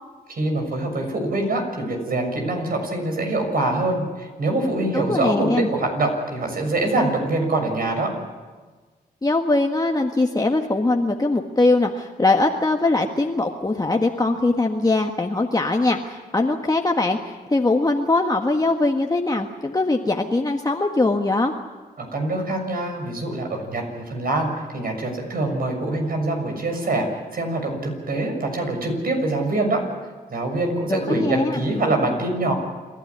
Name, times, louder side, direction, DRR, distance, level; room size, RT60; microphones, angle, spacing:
voice 1, 0.3-8.1 22.0-27.1 27.3-29.8 30.3-32.5, right 2 dB, 60° right, 3 dB, 6.7 m, -24 dB
voice 2, 4.9-5.7 9.2-21.5 30.9-31.6, left 2 dB, 20° left, 2 dB, 1.6 m, -21 dB
28.5 x 12.5 x 9.8 m, 1.4 s
cardioid pair, 60°, 17 cm